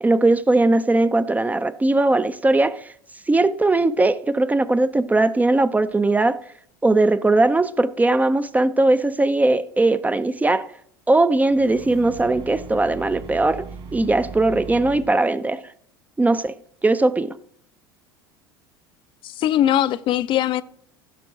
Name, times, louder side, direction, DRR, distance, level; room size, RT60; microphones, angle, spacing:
voice 1, 0.0-2.9 3.3-6.4 6.8-10.7 11.1-15.6 16.2-16.5 16.8-17.4, right 2 dB, 10° right, 0.4 m, -19 dB
sound 1, 11.5-15.1, right 4 dB, 45° right, 2.1 m, -38 dB
voice 2, 19.2-20.6, left 11 dB, 45° left, 0.4 m, -20 dB
15.0 x 6.1 x 3.8 m
hypercardioid pair, 70°, 12 cm